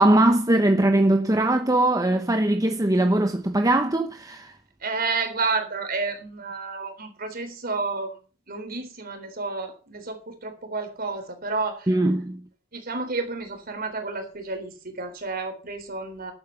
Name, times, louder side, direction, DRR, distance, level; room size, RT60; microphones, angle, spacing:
voice 1, 0.0-4.5 11.9-12.4, right 1 dB, 15° right, 0.9 m, -20 dB
voice 2, 4.8-8.1 8.5-11.9 12.7-16.3, right 3 dB, 45° right, 3.8 m, -30 dB
11.5 x 8.6 x 7.1 m
head